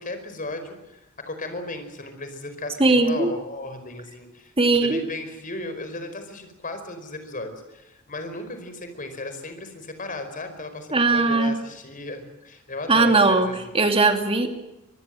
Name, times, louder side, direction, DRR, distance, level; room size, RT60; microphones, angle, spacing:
voice 1, 0.0-13.7, left 2 dB, 40° left, 8 dB, 5.0 m, -35 dB
voice 2, 2.8-3.3 4.6-5.0 10.9-11.6 12.9-13.5 13.7-14.5, right 3 dB, 25° right, 6 dB, 2.8 m, -19 dB
25.5 x 20.5 x 7.8 m, 0.95 s
head